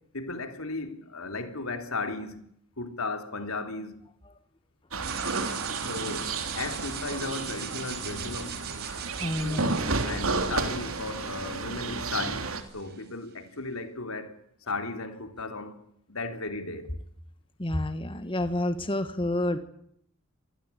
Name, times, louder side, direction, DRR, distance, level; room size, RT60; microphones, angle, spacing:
voice 1, 0.1-2.4 2.8-4.0 5.9-8.6 10.0-14.4 14.7-16.9, left 3 dB, 80° left, 3.5 m, -35 dB
sound 1, 4.9-12.6, right 3 dB, 80° right, 3.1 m, -32 dB
sound 2, 5.0-13.0, right 9 dB, 50° right, 4.7 m, -41 dB
voice 2, 9.2-9.8 17.6-19.6, left 1 dB, 25° left, 1.6 m, -29 dB
26.0 x 19.0 x 8.6 m
head